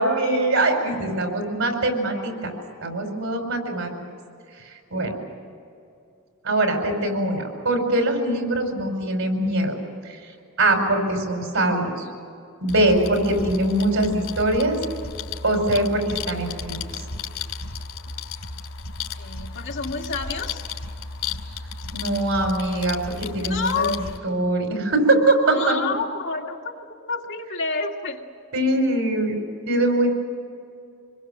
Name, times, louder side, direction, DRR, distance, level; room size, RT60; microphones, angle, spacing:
voice 1, 0.0-2.5 2.8-3.9 4.7-5.2 6.4-9.8 10.0-10.2 10.6-12.1 12.6-14.8 15.4-17.0 21.9-23.9 24.2-25.8 28.5-29.4 29.7-30.1, right 1 dB, 85° right, 3 dB, 5.3 m, -22 dB
sound 1, 12.7-24.2, left 4 dB, 80° left, 2.9 m, -34 dB
voice 2, 19.2-20.6 23.4-24.0 25.5-26.6 27.1-28.2, left 4 dB, 60° left, 0 dB, 2.2 m, -28 dB
26.0 x 21.5 x 7.5 m, 2.5 s
head